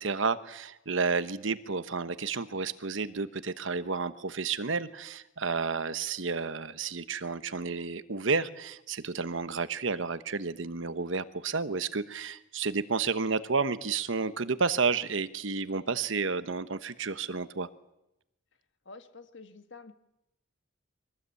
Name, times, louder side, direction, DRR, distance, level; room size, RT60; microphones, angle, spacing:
voice 1, 0.0-17.7, right 4 dB, 65° right, 13 dB, 1.1 m, -31 dB
voice 2, 18.8-19.9, left 3 dB, 60° left, 9 dB, 1.6 m, -48 dB
24.0 x 18.5 x 8.4 m, 0.89 s
head